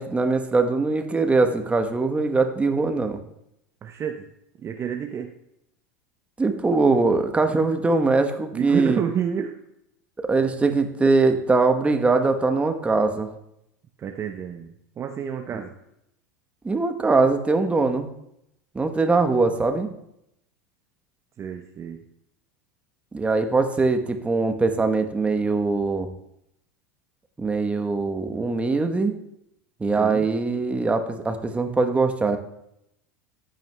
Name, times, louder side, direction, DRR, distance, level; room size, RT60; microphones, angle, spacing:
voice 1, 0.0-3.2 6.4-9.0 10.2-13.3 16.6-18.1 18.7-19.9 23.1-26.1 27.4-29.1 29.8-32.4, right 3 dB, 15° right, 6 dB, 1.0 m, -22 dB
voice 2, 3.8-4.3 4.6-5.3 8.5-9.6 14.0-15.8 21.4-22.0 30.0-30.3, right 7 dB, 30° right, 5 dB, 0.7 m, -30 dB
14.5 x 9.1 x 2.2 m, 0.80 s
hypercardioid pair, 90°, 9 cm